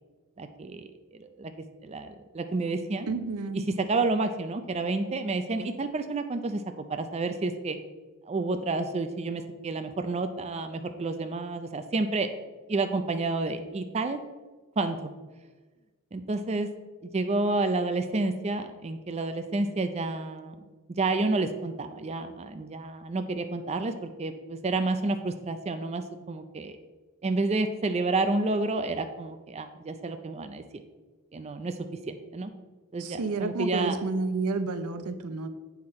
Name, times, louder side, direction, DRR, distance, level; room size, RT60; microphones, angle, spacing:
voice 1, 0.4-0.9 1.1-1.5 1.8-3.1 3.5-7.8 8.3-12.3 12.7-14.2 14.8-15.1 16.1-16.7 17.0-20.5 21.0-26.8 27.2-30.8 31.3-31.8 32.1-32.5 32.9-34.0, right 3 dB, 30° right, 8 dB, 0.4 m, -30 dB
voice 2, 3.1-3.7 33.0-35.5, right 3 dB, 90° right, 11 dB, 0.6 m, -30 dB
7.8 x 5.8 x 4.2 m, 1.3 s
head